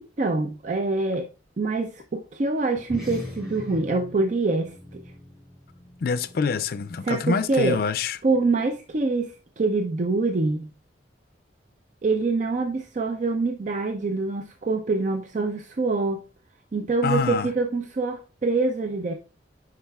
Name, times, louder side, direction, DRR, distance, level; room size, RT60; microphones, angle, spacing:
voice 1, 0.2-1.3 1.6-5.0 7.0-7.8 8.2-10.7 12.0-16.2 16.7-19.1, right 3 dB, 45° right, 0.4 m, -25 dB
sound 1, 2.8-7.6, left 1 dB, ahead, 3.1 m, -41 dB
voice 2, 6.0-8.2 17.0-17.5, left 5 dB, 55° left, 0.4 m, -25 dB
10.0 x 4.8 x 2.3 m
head